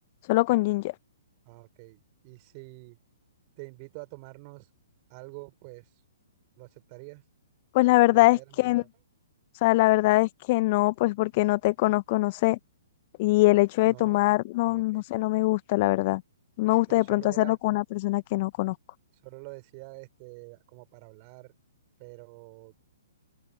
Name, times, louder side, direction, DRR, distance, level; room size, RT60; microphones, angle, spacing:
voice 1, 0.3-0.9 7.7-8.8 9.6-12.6 13.2-16.2 16.6-18.7, left 20 dB, 40° left, 0.9 m, -23 dB
voice 2, 1.5-3.0 3.6-4.7 5.1-5.9 6.6-7.2 8.1-8.9 13.9-14.2 14.7-15.1 16.9-17.6 19.2-21.5 22.0-22.8, right 31 dB, 35° right, 5.8 m, -46 dB
open air
figure-of-eight pair, 120°, 0 cm